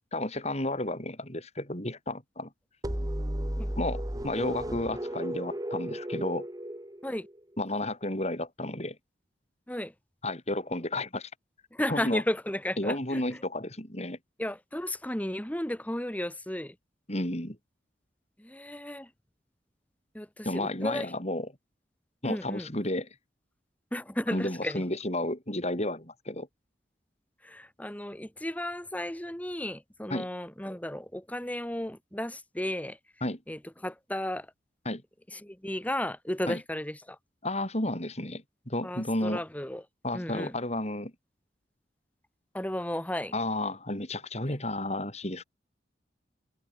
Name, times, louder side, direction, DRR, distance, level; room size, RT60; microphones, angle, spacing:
voice 1, 0.1-2.5 3.8-6.5 7.6-9.0 10.2-11.3 11.9-12.2 12.8-14.2 17.1-17.6 20.4-21.5 22.2-23.1 24.3-26.5 30.1-30.3 33.2-33.4 34.8-35.0 36.5-36.6 37.4-39.4 40.0-41.1 43.3-45.4, left 1 dB, 35° left, 6.7 m, -32 dB
sound 1, 2.8-7.6, equal, 20° right, 2.3 m, -34 dB
voice 2, 11.7-13.4 14.4-16.7 18.4-19.1 20.1-21.1 22.2-22.7 23.9-24.8 27.4-33.0 33.5-34.5 35.3-37.2 38.8-39.8 40.1-40.5 42.5-43.3 44.5-44.6, left 1 dB, 10° left, 1.7 m, -34 dB
head